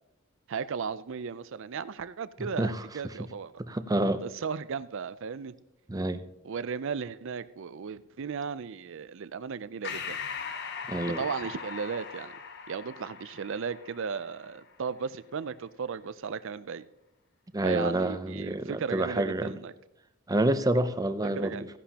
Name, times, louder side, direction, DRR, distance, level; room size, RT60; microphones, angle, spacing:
voice 1, 0.5-3.5 4.2-5.5 6.4-10.2 11.1-12.3 12.7-16.9 17.6-19.7 21.2-21.7, right 6 dB, 65° right, 15 dB, 0.5 m, -35 dB
voice 2, 2.4-3.1 3.6-4.2 5.9-6.2 10.9-11.2 17.5-19.6 20.3-21.7, right 1 dB, 20° right, 11 dB, 0.6 m, -28 dB
Breathing, 9.8-14.7, left 6 dB, 55° left, 1.0 m, -40 dB
15.5 x 11.0 x 2.9 m, 0.88 s
head